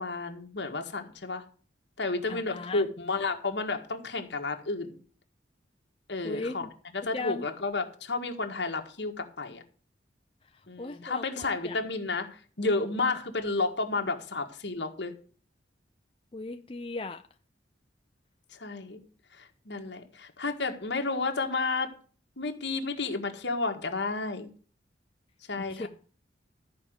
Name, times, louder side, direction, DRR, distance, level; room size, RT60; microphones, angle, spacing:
voice 1, 0.0-1.4 2.0-5.0 6.1-6.7 6.9-9.6 10.7-15.1 18.5-19.0 19.3-21.9 22.4-24.5 25.5-25.9, left 3 dB, 70° left, 4 dB, 1.7 m, -31 dB
voice 2, 2.3-2.9 6.2-6.7 7.1-7.5 10.8-11.8 13.0-13.3 16.3-17.2 25.6-25.9, left 3 dB, 30° left, 6 dB, 0.5 m, -37 dB
13.5 x 5.0 x 8.0 m, 0.42 s
head